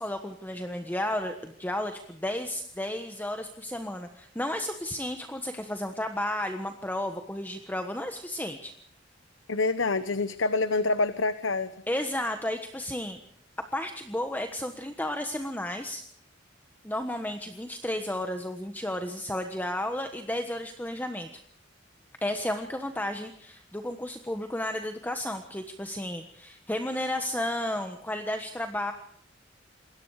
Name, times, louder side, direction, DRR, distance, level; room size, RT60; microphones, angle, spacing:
voice 1, 0.0-8.7 11.9-13.2 13.7-16.0 16.8-21.3 22.2-28.9, left 1 dB, 10° left, 6 dB, 1.3 m, -33 dB
voice 2, 9.5-11.7, left 3 dB, 85° left, 12 dB, 1.1 m, -26 dB
27.5 x 21.5 x 4.9 m, 0.65 s
head